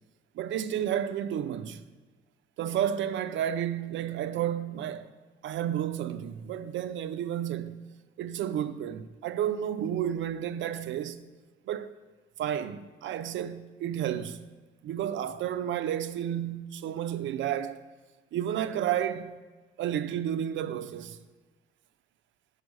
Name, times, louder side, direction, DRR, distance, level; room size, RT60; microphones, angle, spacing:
voice 1, 0.3-1.8 2.6-5.1 5.4-7.8 8.2-11.2 11.7-11.9 12.4-14.4 14.8-17.8 18.3-19.4 19.8-21.2, right 10 dB, 75° right, 0.5 m, -31 dB
6.4 x 4.8 x 6.4 m
cardioid pair, 90°, 20 cm